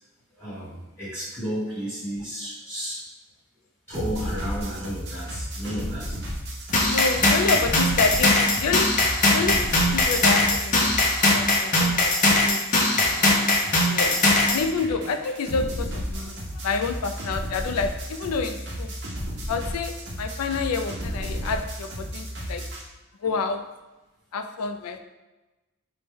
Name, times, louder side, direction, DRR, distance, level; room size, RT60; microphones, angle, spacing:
voice 1, 0.3-3.0 3.9-6.2 23.2-23.3, equal, 10° left, -10 dB, 1.3 m, -33 dB
sound 1, 3.9-11.5 11.8-22.8, equal, 50° right, 0.8 m, -34 dB
sound 2, 6.7-14.6, left 2 dB, 35° left, 0.6 m, -20 dB
voice 2, 6.8-11.1 11.3-12.7 13.0-13.1 13.9-18.9 19.5-22.6 23.2-23.7 24.3-25.0, left 4 dB, 85° left, 8 dB, 0.4 m, -29 dB
4.3 x 2.2 x 3.4 m, 1.1 s
head